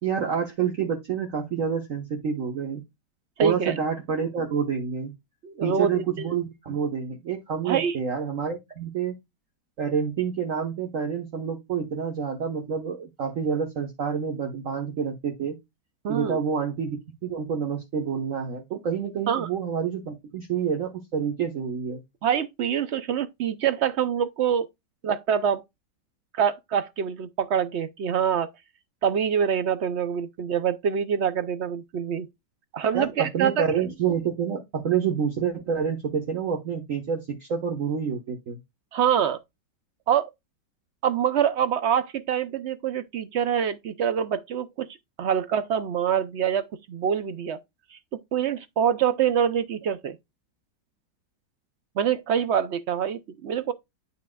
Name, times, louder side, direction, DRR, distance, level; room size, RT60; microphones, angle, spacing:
voice 1, 0.0-2.8 3.4-5.1 5.6-9.2 9.8-15.6 16.1-17.0 17.2-22.0 32.9-38.6, right 7 dB, 50° right, 1.5 m, -28 dB
voice 2, 3.4-3.7 5.4-6.3 7.6-8.0 16.0-16.4 19.3-19.5 22.2-24.7 25.0-25.6 26.3-28.5 29.0-32.3 32.7-33.6 38.9-39.4 40.1-40.3 41.0-44.9 45.2-47.6 47.9-48.0 48.3-50.2 52.0-53.7, right 8 dB, 70° right, 0.6 m, -25 dB
9.8 x 5.7 x 2.3 m
omnidirectional pair, 1.9 m